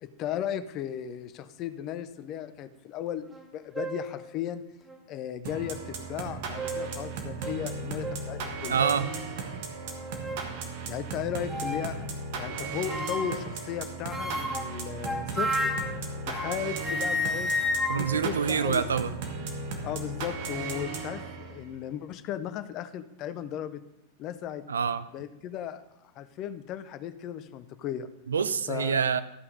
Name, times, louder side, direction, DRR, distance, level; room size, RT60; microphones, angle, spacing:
voice 1, 0.0-3.3 3.5-4.6 5.1-8.8 10.9-12.0 12.4-15.7 16.3-17.6 17.9-19.0 19.8-23.8 24.2-24.6 25.1-25.8 26.1-28.1 28.7-29.2, left 10 dB, 35° left, 12 dB, 0.6 m, -36 dB
sound 1, 3.3-3.4 3.7-4.1 4.9-5.0 6.2-7.0 7.4-7.6 8.0-8.2 8.8-9.1 9.7-10.5 11.5-11.9 12.9-13.5 14.1-16.6 16.8-19.2, left 1 dB, 5° right, 1.1 m, -32 dB
sound 2, 5.5-21.8, right 4 dB, 50° right, 1.4 m, -36 dB
voice 2, 8.7-9.1 17.9-19.1 24.7-25.0 28.3-29.2, right 7 dB, 70° right, 13 dB, 0.5 m, -26 dB
12.5 x 5.6 x 5.3 m, 0.84 s
figure-of-eight pair, 90°, 0 cm